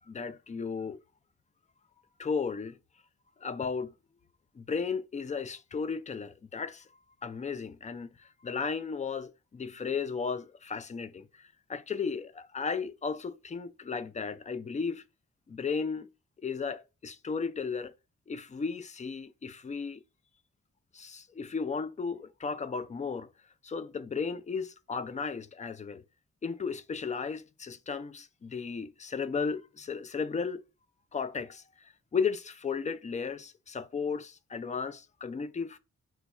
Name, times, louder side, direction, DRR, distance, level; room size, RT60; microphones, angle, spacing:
voice 1, 0.1-1.0 2.2-2.8 3.4-3.9 4.5-6.9 7.2-15.0 15.5-16.1 16.4-17.9 18.3-20.0 20.9-23.3 23.6-26.0 26.4-30.6 31.1-35.8, left 5 dB, 25° left, 0.4 m, -35 dB
3.1 x 2.3 x 4.1 m
cardioid pair, 70°, 29 cm